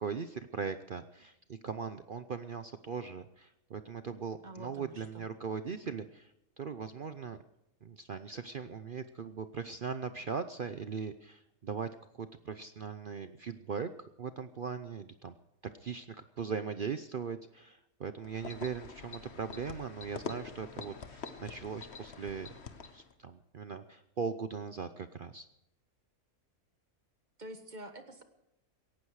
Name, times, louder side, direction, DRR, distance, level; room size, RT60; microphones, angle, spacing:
voice 1, 0.0-6.3 6.6-7.4 7.8-11.9 12.1-13.9 14.2-15.4 15.8-22.5 22.9-25.5, right 6 dB, 50° right, 11 dB, 0.6 m, -39 dB
voice 2, 4.4-5.3 27.4-28.2, right 1 dB, 30° right, 7 dB, 1.4 m, -47 dB
sound 1, 18.2-23.1, left 5 dB, 50° left, 1.4 m, -45 dB
18.0 x 15.0 x 4.8 m, 0.81 s
omnidirectional pair, 1.5 m